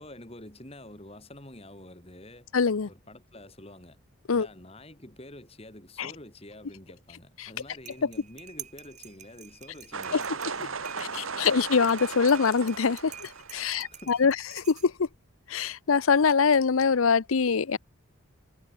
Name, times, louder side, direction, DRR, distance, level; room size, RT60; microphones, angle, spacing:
voice 1, 0.0-2.5 2.8-4.0 4.3-11.5 13.6-14.4, left 1 dB, 30° left, 3.7 m, -48 dB
voice 2, 2.5-2.9 4.3-4.5 6.0-6.1 7.4-7.5 11.4-14.3 14.8-15.1 15.5-17.8, left 5 dB, 85° left, 0.6 m, -23 dB
sound 1, 7.5-15.2, right 9 dB, 35° right, 6.3 m, -48 dB
sound 2, 9.9-13.7, right 5 dB, 80° right, 2.4 m, -36 dB
head